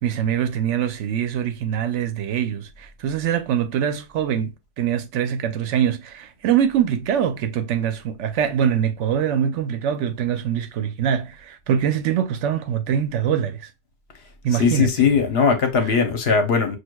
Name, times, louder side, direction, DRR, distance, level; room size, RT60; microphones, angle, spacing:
voice 1, 0.0-4.5 4.8-13.7 14.4-14.9, right 9 dB, 90° right, 0.9 m, -23 dB
voice 2, 14.5-16.8, left 5 dB, 60° left, 1.0 m, -19 dB
6.2 x 2.4 x 2.2 m
omnidirectional pair, 1.2 m